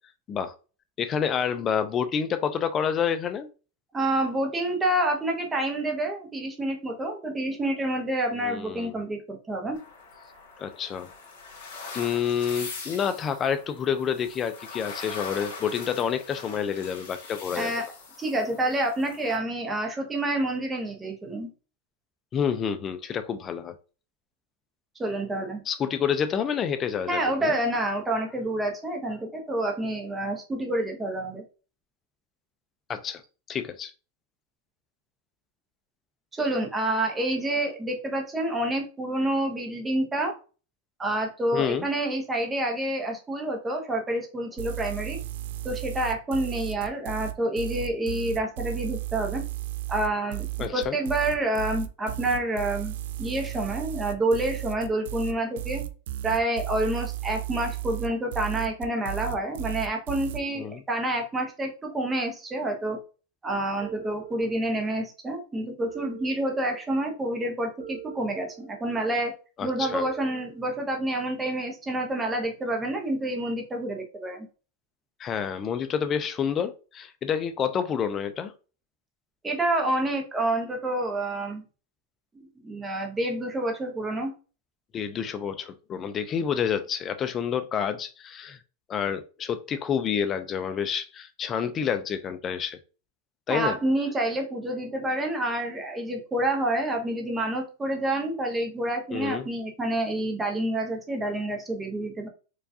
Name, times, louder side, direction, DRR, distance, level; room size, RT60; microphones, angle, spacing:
voice 1, 1.0-3.5 8.4-9.0 10.6-11.1 11.9-17.7 22.3-23.8 25.7-27.6 32.9-33.2 33.5-33.9 41.5-41.9 50.6-51.0 60.5-60.8 69.6-70.1 75.2-78.5 84.9-88.6 88.9-92.8 93.5-93.8 99.1-99.5, left 7 dB, 20° left, 0.3 m, -28 dB
voice 2, 3.9-9.8 17.5-17.9 18.2-21.5 25.0-25.6 27.1-31.4 36.3-40.3 41.0-45.2 45.6-49.4 49.9-50.5 50.7-55.8 56.2-63.0 63.4-69.3 69.6-74.5 79.4-81.6 82.6-84.3 93.5-102.3, right 1 dB, 10° right, 0.7 m, -28 dB
sound 1, 9.7-19.4, left 4 dB, 70° left, 1.7 m, -42 dB
sound 2, 44.6-60.4, right 14 dB, 65° right, 0.3 m, -34 dB
sound 3, 63.8-65.0 65.8-67.0 67.8-69.0 69.8-71.0, right 13 dB, 50° right, 1.1 m, -44 dB
4.6 x 2.3 x 2.6 m
supercardioid pair, 160°, 0 cm